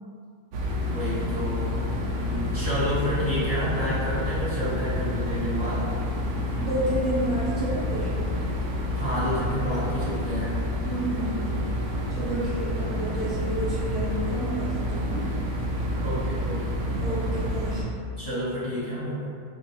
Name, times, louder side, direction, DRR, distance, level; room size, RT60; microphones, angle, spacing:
sound 1, 0.5-17.8, left 1 dB, 70° right, 0.9 m, -28 dB
voice 1, 0.9-1.7 2.1-5.8 8.9-10.6 12.3-12.5 16.0-16.6 18.2-19.2, equal, 25° left, -12 dB, 1.0 m, -30 dB
voice 2, 6.6-8.1 10.8-11.5 12.1-15.3 17.0-17.9, right 1 dB, ahead, -11 dB, 0.9 m, -30 dB
3.1 x 2.6 x 3.0 m, 2.3 s
omnidirectional pair, 1.6 m